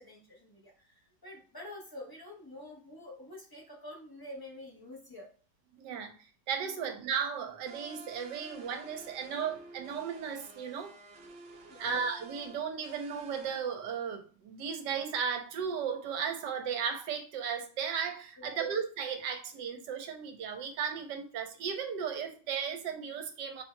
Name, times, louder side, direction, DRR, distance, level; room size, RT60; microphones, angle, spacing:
voice 1, 0.0-5.3 6.7-6.9 11.7-11.9 18.4-18.6, left 1 dB, 15° left, -3 dB, 0.9 m, -48 dB
voice 2, 5.8-6.1 6.5-10.9 11.8-23.6, right 7 dB, 70° right, 5 dB, 1.2 m, -35 dB
sound 1, 7.7-13.6, right 2 dB, 50° right, 0.7 m, -52 dB
4.4 x 2.7 x 4.4 m, 0.40 s
omnidirectional pair, 2.1 m